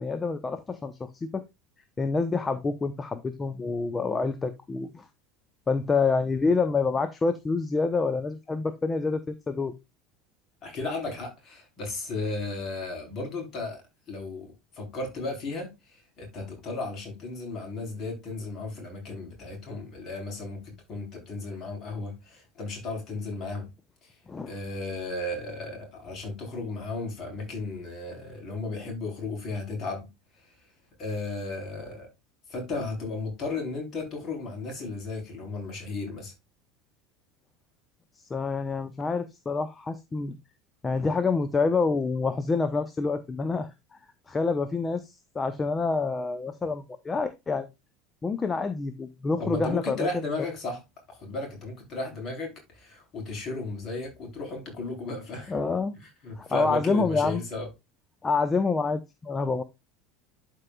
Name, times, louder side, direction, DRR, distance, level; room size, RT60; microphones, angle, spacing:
voice 1, 0.0-1.4 2.0-5.0 5.7-9.7 24.3-24.5 38.3-40.4 40.8-43.7 44.3-47.7 48.2-50.1 55.5-56.0 56.4-57.4 58.2-59.6, left 4 dB, 20° left, 0.8 m, -27 dB
voice 2, 10.6-13.8 14.1-23.7 24.0-24.2 24.5-30.1 30.3-30.5 31.0-32.1 32.5-36.3 49.4-50.8 51.1-55.6 56.0-57.7, left 3 dB, 40° left, 3.9 m, -35 dB
12.0 x 4.7 x 2.3 m
figure-of-eight pair, 70°, 0 cm